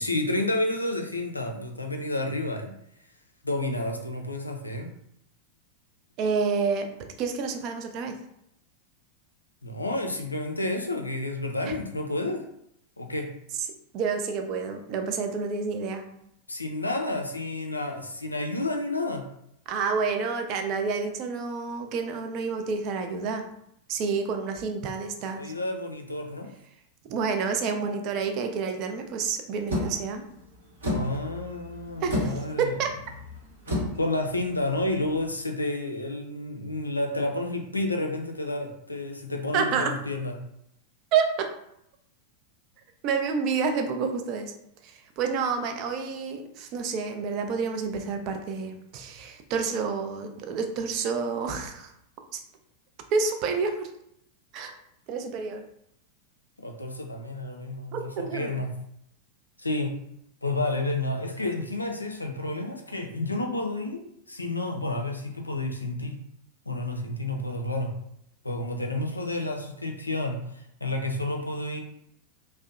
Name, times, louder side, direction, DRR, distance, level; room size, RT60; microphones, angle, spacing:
voice 1, 0.0-2.7 3.4-4.9 9.6-12.4 13.0-13.3 16.5-19.3 25.4-26.5 30.9-32.8 34.0-40.4 56.6-58.7 59.6-60.0 60.4-66.2 66.7-68.0 68.4-71.8, left 2 dB, 85° left, 3 dB, 0.3 m, -30 dB
voice 2, 6.2-6.9 7.2-8.1 13.9-16.0 19.7-23.4 23.9-25.5 27.1-30.2 32.0-32.9 39.5-39.9 41.1-41.5 43.0-44.5 44.8-51.9 52.3-52.4 53.1-53.9 54.5-54.7 55.1-55.6 57.9-58.6, right 5 dB, 40° right, 5 dB, 0.3 m, -29 dB
sound 1, 29.7-35.3, left 1 dB, 70° right, 0.9 m, -33 dB
2.6 x 2.0 x 2.4 m, 0.75 s
figure-of-eight pair, 90°, 0 cm